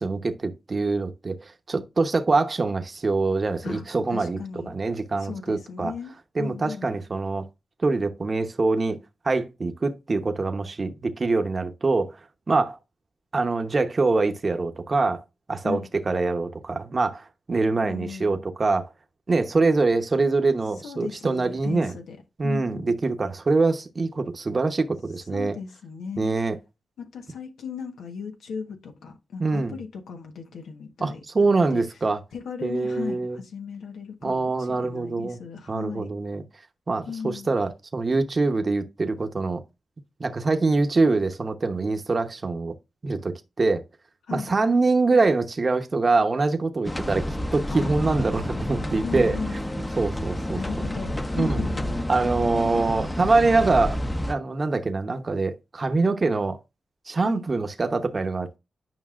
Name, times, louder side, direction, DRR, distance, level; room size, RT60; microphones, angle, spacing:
voice 1, 0.0-1.3 1.7-4.4 4.7-5.9 6.4-7.4 7.8-9.0 9.2-12.1 12.5-12.8 13.3-15.2 15.5-15.8 16.0-18.9 19.3-21.9 22.4-25.5 26.2-26.5 29.4-29.8 31.0-32.2 32.6-33.4 34.2-35.4 35.7-36.4 36.9-39.6 40.2-42.7 43.0-43.8 44.3-49.4 50.0-50.6 51.3-51.6 52.1-54.0 54.3-56.6 57.1-58.6, right 3 dB, 45° right, 1.0 m, -24 dB
voice 2, 4.1-4.7 5.2-6.9 15.6-15.9 17.8-18.4 20.8-22.2 22.4-23.0 25.3-26.3 27.0-31.8 32.3-36.1 37.1-37.6 44.3-44.5 47.7-48.3 49.0-49.6 50.5-52.0 57.2-57.4, left 6 dB, 90° left, 1.2 m, -37 dB
sound 1, 46.8-54.3, left 1 dB, 20° left, 0.9 m, -29 dB
9.5 x 5.4 x 2.5 m
cardioid pair, 50°, 0 cm